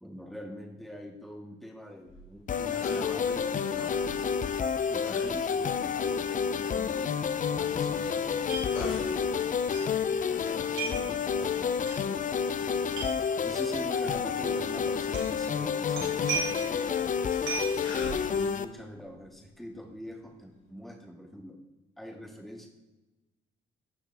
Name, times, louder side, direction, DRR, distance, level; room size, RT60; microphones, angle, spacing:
voice 1, 0.0-4.5 4.9-9.5 10.1-12.4 13.4-17.1 17.7-21.6 22.0-22.7, equal, ahead, 1 dB, 1.8 m, -44 dB
sound 1, 2.0-20.7, left 2 dB, 85° left, 2.5 m, -48 dB
sound 2, 2.5-18.6, left 6 dB, 40° left, 0.5 m, -29 dB
sound 3, 8.5-8.7 9.0-9.1 9.7-9.8 10.8-11.1 11.8-12.0 12.9-13.1 14.1-14.2 15.1-15.4 15.9-16.7 17.5-17.8, right 6 dB, 80° right, 3.2 m, -34 dB
16.0 x 5.8 x 3.4 m, 1.1 s
cardioid pair, 90°, 20 cm